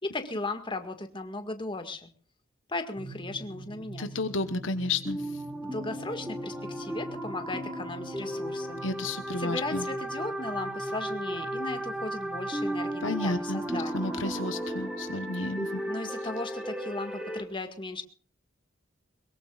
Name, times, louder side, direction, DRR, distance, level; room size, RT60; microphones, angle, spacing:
voice 1, 0.0-2.1 2.7-4.1 5.6-8.8 9.4-14.2 15.9-18.0, left 2 dB, 25° left, 7 dB, 1.9 m, -36 dB
sound 1, 3.0-17.4, right 1 dB, 5° right, 2.4 m, -35 dB
voice 2, 4.0-5.2 8.8-9.8 13.0-15.8, left 2 dB, 70° left, 10 dB, 1.2 m, -32 dB
22.5 x 22.0 x 2.5 m, 0.40 s
head